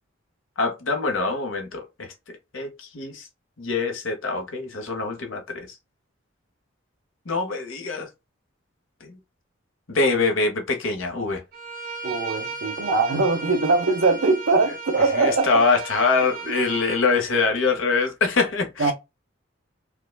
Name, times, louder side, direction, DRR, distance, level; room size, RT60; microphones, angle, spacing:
voice 1, 0.6-2.1 2.5-3.3 3.6-5.7 7.3-8.1 9.0-9.2 9.9-11.4 15.1-18.9, left 4 dB, 80° left, 1.0 m, -24 dB
Bowed string instrument, 11.5-17.0, right 4 dB, 50° right, 1.7 m, -35 dB
voice 2, 12.0-15.5 18.8-18.9, right 3 dB, 85° right, 0.8 m, -21 dB
4.8 x 2.2 x 2.2 m
head